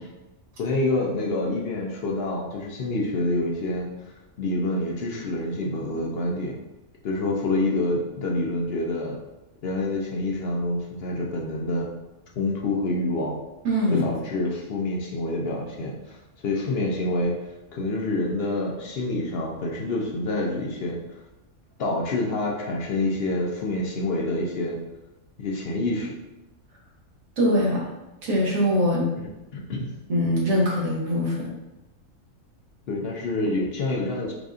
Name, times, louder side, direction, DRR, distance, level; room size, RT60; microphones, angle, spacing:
voice 1, 0.6-3.9 4.4-6.6 7.0-9.2 9.6-11.9 12.4-13.4 13.9-16.2 16.4-17.3 17.7-21.2 21.8-24.8 25.4-26.1 29.2-29.9 32.9-34.3, left 2 dB, 60° left, -1 dB, 0.7 m, -27 dB
voice 2, 13.6-14.1 27.4-27.8 28.2-29.1 30.1-31.6, equal, 80° right, -3 dB, 1.4 m, -22 dB
4.7 x 2.5 x 2.4 m, 0.99 s
omnidirectional pair, 1.4 m